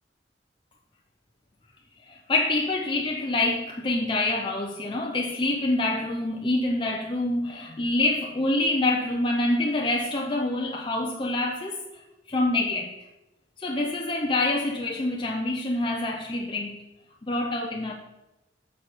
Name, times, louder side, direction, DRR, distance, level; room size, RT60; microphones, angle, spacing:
voice 1, 2.1-11.8 12.3-12.9 13.6-16.7 17.2-17.9, left 2 dB, 25° left, 0 dB, 0.6 m, -26 dB
6.5 x 6.2 x 5.7 m, 0.96 s
head